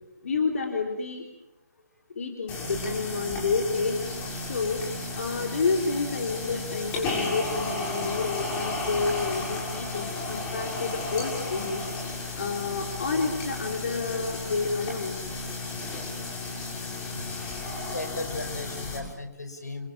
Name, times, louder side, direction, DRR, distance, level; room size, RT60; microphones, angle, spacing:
voice 1, 0.2-1.2 2.2-4.0 4.4-4.8 5.1-15.2, left 4 dB, 50° left, 2 dB, 3.7 m, -29 dB
sound 1, 2.5-19.0, left 2 dB, 20° left, 6.6 m, -33 dB
voice 2, 17.9-19.9, left 3 dB, 70° left, 6 dB, 5.6 m, -36 dB
30.0 x 25.5 x 7.4 m, 0.93 s
figure-of-eight pair, 135°, 9 cm